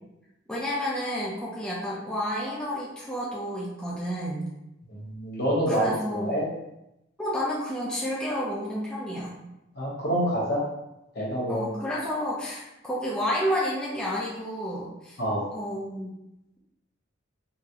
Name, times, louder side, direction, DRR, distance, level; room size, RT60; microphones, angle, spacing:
voice 1, 0.5-4.5 5.7-6.3 7.2-9.4 11.5-15.2 15.5-16.1, equal, 5° left, -7 dB, 0.5 m, -30 dB
voice 2, 4.9-6.5 9.8-10.6 11.1-11.7 15.2-15.4, equal, 55° left, -4 dB, 0.9 m, -27 dB
3.8 x 2.2 x 2.8 m, 0.89 s
head